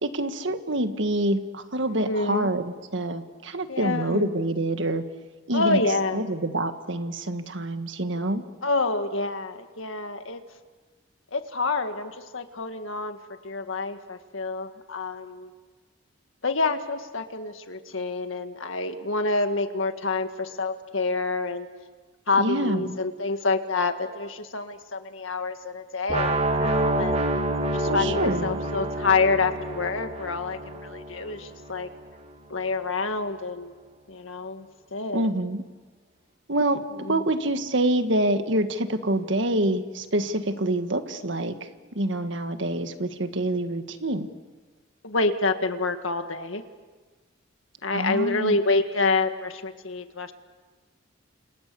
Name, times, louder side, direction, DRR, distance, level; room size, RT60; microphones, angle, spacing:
voice 1, 0.0-5.0 5.5-5.8 6.1-8.4 22.4-22.9 27.9-28.6 35.1-35.6 36.5-36.8 37.1-41.5 41.9-44.3 47.9-48.6, right 1 dB, 70° right, 8 dB, 1.7 m, -26 dB
voice 2, 1.9-2.5 3.7-4.3 5.5-6.3 8.6-10.4 11.3-13.2 13.4-15.5 16.4-21.7 22.3-27.2 27.7-31.9 32.5-33.7 34.1-35.3 37.0-37.2 45.0-46.6 47.8-50.3, left 3 dB, 85° left, 7 dB, 1.9 m, -27 dB
sound 1, 26.1-32.0, right 1 dB, 30° right, 1.7 m, -28 dB
30.0 x 27.0 x 7.0 m, 1.4 s
head